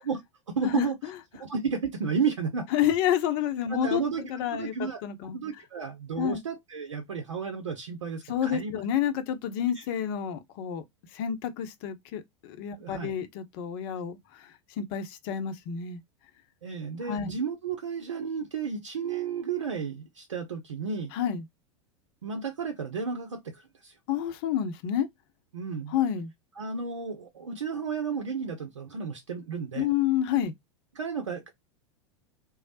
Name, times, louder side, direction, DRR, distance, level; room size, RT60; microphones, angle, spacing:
voice 1, 0.5-0.9 1.4-2.7 3.7-5.0 5.3-8.7 9.8-9.9 12.8-13.1 16.6-21.1 22.2-23.9 25.5-25.9 26.6-29.9 30.9-31.5, right 5 dB, 80° right, 0.6 m, -32 dB
voice 2, 2.7-5.4 6.2-6.4 8.3-10.8 11.1-14.5 14.8-16.0 17.1-17.4 21.1-21.4 24.1-25.1 25.9-26.3 29.7-30.5, left 9 dB, 50° left, 0.6 m, -29 dB
3.1 x 2.0 x 2.6 m
figure-of-eight pair, 90°, 15 cm